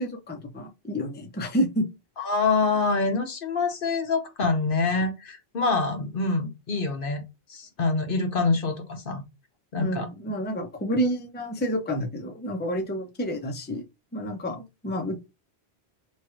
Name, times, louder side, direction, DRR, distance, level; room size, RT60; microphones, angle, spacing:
voice 1, 0.0-1.9 9.8-13.8 14.1-15.2, equal, 10° left, 0.6 m, -29 dB
voice 2, 2.2-7.2 7.5-9.2 9.7-10.1, left 3 dB, 55° left, 1.0 m, -25 dB
3.1 x 2.5 x 4.4 m
omnidirectional pair, 1.1 m